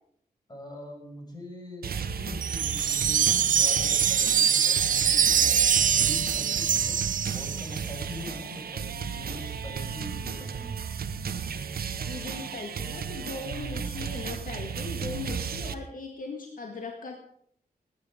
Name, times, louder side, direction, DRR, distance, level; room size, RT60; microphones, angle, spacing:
voice 1, 0.5-7.0 7.3-10.8, left 1 dB, 25° left, 0 dB, 6.3 m, -42 dB
sound 1, 1.8-15.7, right 6 dB, 85° right, 1.0 m, -34 dB
Wind chime, 2.4-7.8, right 8 dB, 60° right, 0.5 m, -24 dB
voice 2, 12.1-17.2, left 4 dB, 65° left, 3 dB, 1.8 m, -39 dB
19.5 x 9.7 x 5.1 m, 0.65 s
wide cardioid pair, 130°, 15 cm